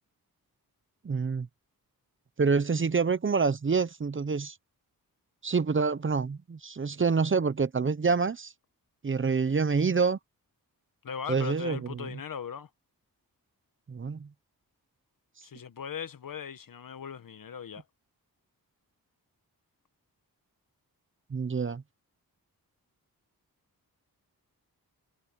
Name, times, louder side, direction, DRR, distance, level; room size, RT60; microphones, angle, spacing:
voice 1, 1.0-1.5 2.4-4.6 5.4-8.5 9.0-10.2 11.3-12.1 13.9-14.3 21.3-21.8, right 5 dB, 35° right, 0.8 m, -27 dB
voice 2, 11.0-12.7 15.4-17.8, left 7 dB, 60° left, 1.4 m, -39 dB
wide cardioid pair, 100°, 37 cm